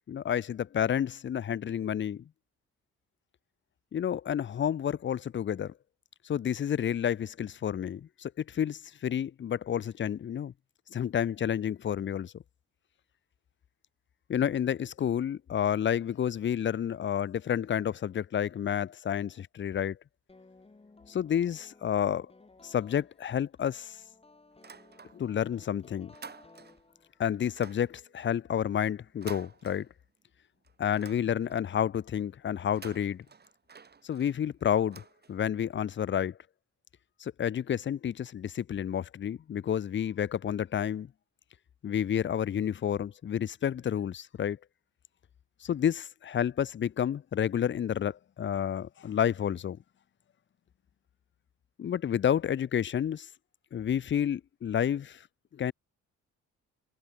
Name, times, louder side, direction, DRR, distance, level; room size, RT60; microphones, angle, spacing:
voice 1, 0.1-2.2 3.9-5.7 6.2-10.5 10.9-12.3 14.3-20.0 21.1-22.3 22.6-24.0 25.1-26.1 27.2-29.9 30.8-33.2 34.0-35.0 35.3-36.4 37.2-41.1 41.8-44.6 45.6-49.8 51.8-53.3 53.7-55.2 55.5-55.7, left 9 dB, 40° left, 0.7 m, -30 dB
sound 1, 20.3-27.4, left 3 dB, 20° left, 3.6 m, -58 dB
sound 2, 24.5-25.5 25.8-27.0 27.5-30.3 30.6-31.8 32.6-35.7, right 5 dB, 35° right, 2.6 m, -51 dB
cardioid pair, 90°, 30 cm